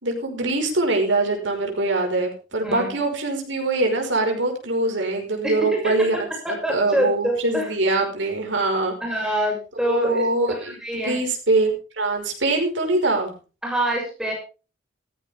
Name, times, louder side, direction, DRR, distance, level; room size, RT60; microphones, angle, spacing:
voice 1, 0.0-8.9 9.9-11.7 12.0-13.3, right 2 dB, 75° right, 2 dB, 5.3 m, -23 dB
voice 2, 2.6-3.0 5.4-5.8 6.4-7.7 9.0-10.2 10.6-11.2 13.6-14.3, right 1 dB, 5° right, -1 dB, 6.6 m, -25 dB
16.0 x 14.5 x 3.6 m, 0.34 s
head